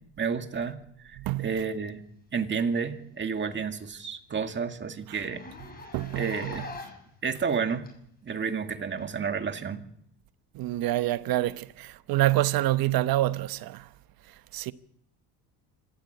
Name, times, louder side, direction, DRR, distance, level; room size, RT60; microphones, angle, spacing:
voice 1, 0.2-2.0 2.3-5.4 6.1-6.7 7.2-7.9 8.2-9.9, right 6 dB, 25° right, 2.0 m, -31 dB
voice 2, 1.2-1.6 5.1-5.2 5.9-6.6 10.5-13.9 14.5-14.7, right 15 dB, 55° right, 1.0 m, -27 dB
Zipper (clothing), 2.7-2.8 3.1-3.2 3.5-3.6 4.0-4.1 4.3-4.5 5.1-7.1 7.9-8.0 9.0-9.1, left 4 dB, 20° left, 6.5 m, -43 dB
26.5 x 14.5 x 8.0 m
cardioid pair, 130°, 42 cm